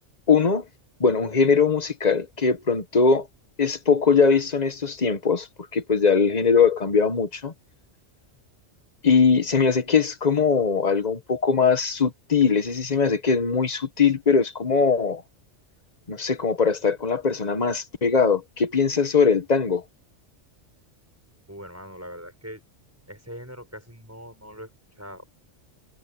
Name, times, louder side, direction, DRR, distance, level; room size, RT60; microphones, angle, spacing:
voice 1, 0.3-0.6 1.0-3.3 3.6-5.5 5.7-7.5 9.0-15.2 16.1-19.8, left 5 dB, 35° left, 1.3 m, -21 dB
voice 2, 21.5-22.6 23.1-24.7 25.0-25.2, equal, 10° right, 5.8 m, -41 dB
omnidirectional pair, 1.2 m